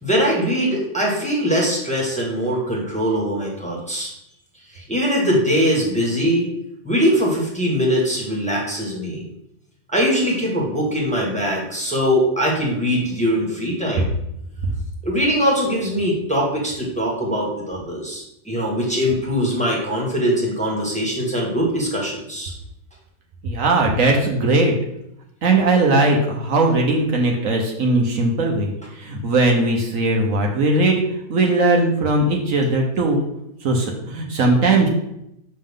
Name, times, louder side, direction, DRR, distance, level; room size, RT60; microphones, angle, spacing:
voice 1, 0.0-4.1 4.7-6.5 6.8-9.2 9.9-14.1 15.0-22.5, equal, 5° left, -4 dB, 1.6 m, -21 dB
voice 2, 23.4-24.7 25.4-31.0 31.3-33.2 33.6-34.9, right 2 dB, 65° right, 1 dB, 1.2 m, -19 dB
6.6 x 5.4 x 3.7 m, 0.82 s
omnidirectional pair, 1.5 m